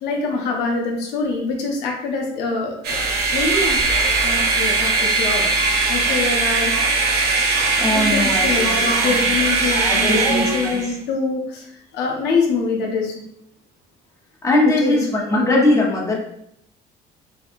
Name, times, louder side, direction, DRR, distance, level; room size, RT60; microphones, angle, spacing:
voice 1, 0.0-3.0 3.3-3.8 4.2-5.5 5.9-6.7 7.9-13.1 14.6-15.0, left 4 dB, 85° left, 0 dB, 0.6 m, -24 dB
sound 1, 2.8-10.9, right 3 dB, 75° right, 0.5 m, -20 dB
voice 2, 7.8-8.8 9.1-9.2 9.7-10.9 14.4-16.1, left 1 dB, 20° left, -2 dB, 0.6 m, -20 dB
2.6 x 2.2 x 2.5 m, 0.73 s
cardioid pair, 110°, 17 cm